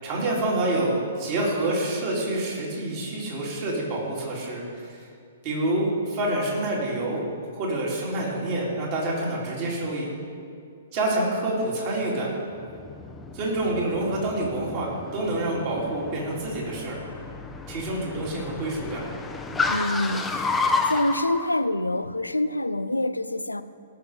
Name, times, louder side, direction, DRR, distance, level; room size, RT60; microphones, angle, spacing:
voice 1, 0.0-5.1 5.4-7.2 7.5-10.1 10.9-12.3 13.3-17.0 17.7-19.0, right 1 dB, 40° right, 3.8 m, -27 dB
Car, 12.5-21.5, left 3 dB, 10° left, 0.8 m, -31 dB
voice 2, 19.7-23.6, left 1 dB, 90° left, 0.5 m, -26 dB
18.0 x 6.9 x 5.2 m
figure-of-eight pair, 120°, 0 cm